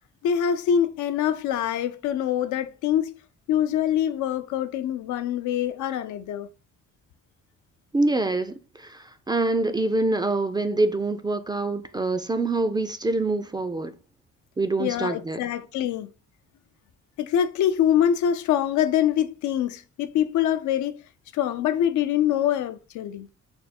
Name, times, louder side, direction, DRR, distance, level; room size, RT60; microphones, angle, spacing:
voice 1, 0.2-3.1 3.5-6.5 14.8-16.1 17.2-21.0 21.3-23.3, left 10 dB, 75° left, 0.5 m, -24 dB
voice 2, 7.9-13.9 14.6-15.4, right 2 dB, 15° right, 0.3 m, -25 dB
3.5 x 2.2 x 4.2 m
cardioid pair, 90°, 30 cm